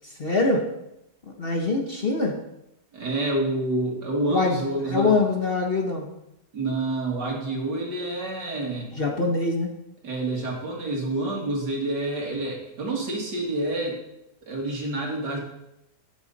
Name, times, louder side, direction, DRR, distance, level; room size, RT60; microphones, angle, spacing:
voice 1, 0.2-0.6 1.4-2.3 4.3-4.6 4.9-6.1 8.9-9.7, left 3 dB, 40° left, 1 dB, 1.2 m, -23 dB
voice 2, 2.9-5.1 6.5-8.9 10.0-14.0 14.5-15.4, right 2 dB, 75° right, -1 dB, 2.9 m, -28 dB
11.5 x 8.7 x 4.1 m, 0.87 s
omnidirectional pair, 1.9 m